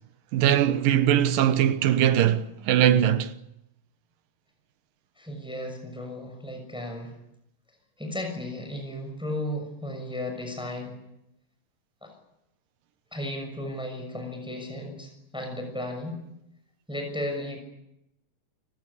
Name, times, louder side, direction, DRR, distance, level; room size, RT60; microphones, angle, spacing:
voice 1, 0.3-3.3, right 11 dB, 90° right, 2.9 m, -21 dB
voice 2, 5.2-7.1 8.0-11.0 12.0-12.2 13.1-16.2 16.9-17.6, left 1 dB, ahead, 6.2 m, -34 dB
30.0 x 17.5 x 10.0 m
omnidirectional pair, 3.8 m